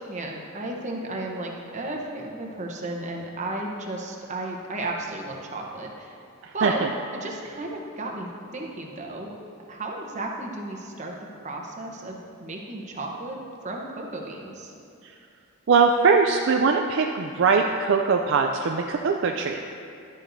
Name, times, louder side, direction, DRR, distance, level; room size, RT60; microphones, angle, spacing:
voice 1, 0.0-6.2 6.5-6.8 7.1-9.3 9.7-11.1 11.4-14.7, right 2 dB, 35° right, 0 dB, 0.9 m, -34 dB
voice 2, 6.4-6.9 15.0-15.1 15.7-19.6, right 5 dB, 55° right, 3 dB, 0.4 m, -21 dB
11.5 x 8.9 x 2.7 m, 2.5 s
head